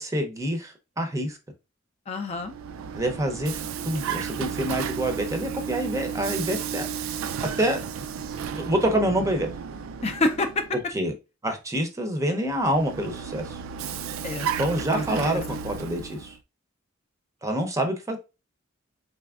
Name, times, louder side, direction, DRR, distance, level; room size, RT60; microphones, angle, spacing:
voice 1, 0.0-1.4 2.9-7.2 7.6-7.8 8.5-9.5 10.9-11.1 11.4-13.6 14.6-16.4 17.4-18.2, right 1 dB, 15° right, 0.6 m, -27 dB
voice 2, 2.1-2.5 10.0-10.6 14.2-14.5 14.9-15.6, left 2 dB, 30° left, 0.4 m, -28 dB
Vehicle, 2.3-10.8 12.5-16.4, right 7 dB, 75° right, 0.3 m, -33 dB
4.0 x 3.4 x 2.3 m
head